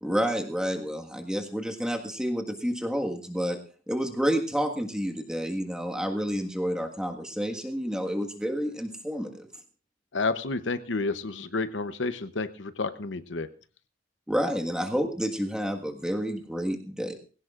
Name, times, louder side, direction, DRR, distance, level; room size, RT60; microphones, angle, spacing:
voice 1, 0.0-3.6 3.9-9.5 14.3-17.1, equal, 5° right, 2 dB, 1.6 m, -29 dB
voice 2, 10.1-13.5, left 3 dB, 75° left, 11 dB, 0.9 m, -30 dB
20.5 x 17.0 x 2.5 m, 0.38 s
head